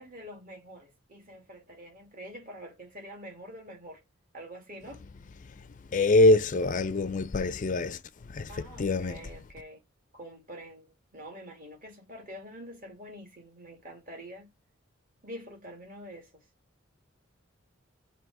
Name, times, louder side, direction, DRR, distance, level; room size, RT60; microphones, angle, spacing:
voice 1, 0.0-4.0 4.3-5.0 8.5-9.8 10.1-14.5 15.2-16.4, equal, 45° right, 2.1 m, -46 dB
voice 2, 5.9-9.2, left 2 dB, 40° left, 0.4 m, -24 dB
7.3 x 2.9 x 4.6 m
head